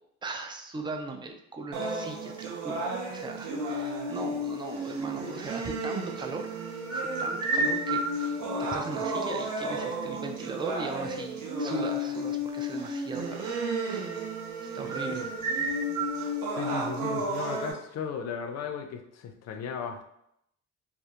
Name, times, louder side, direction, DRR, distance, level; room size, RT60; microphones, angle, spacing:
voice 1, 0.2-6.5 6.9-14.1 14.6-15.3, right 3 dB, 15° right, 4 dB, 0.3 m, -39 dB
sound 1, 1.7-17.7, right 1 dB, 90° right, 0.6 m, -32 dB
voice 2, 16.5-20.0, left 7 dB, 60° left, 6 dB, 0.4 m, -36 dB
2.3 x 2.0 x 2.8 m, 0.76 s
cardioid pair, 90°, 30 cm